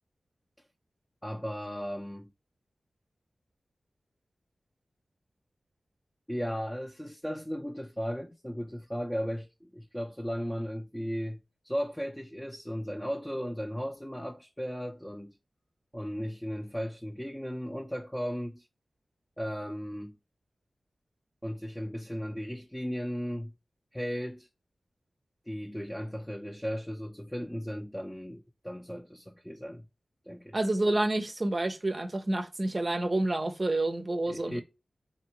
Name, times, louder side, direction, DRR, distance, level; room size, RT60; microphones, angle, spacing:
voice 1, 1.2-2.3 6.3-11.4 11.6-15.4 15.9-18.7 19.4-20.2 21.4-23.5 23.9-24.5 25.5-29.9 30.3-30.6 34.3-34.6, equal, 10° left, 0.6 m, -36 dB
voice 2, 30.5-34.6, right 2 dB, 40° right, 0.6 m, -29 dB
4.3 x 2.6 x 2.9 m
cardioid pair, 45°, 0 cm